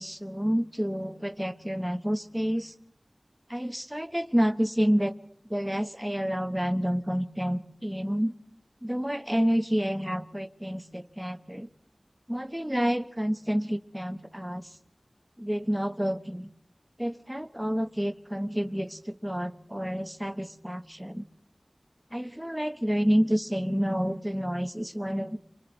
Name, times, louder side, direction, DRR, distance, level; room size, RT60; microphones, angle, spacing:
voice 1, 0.0-2.7 3.5-5.1 5.5-8.3 8.8-11.7 12.3-14.7 15.4-16.5 17.0-21.2 22.1-25.4, equal, 10° right, 10 dB, 1.0 m, -29 dB
29.5 x 25.0 x 4.1 m, 0.68 s
wide cardioid pair, 55°, 0 cm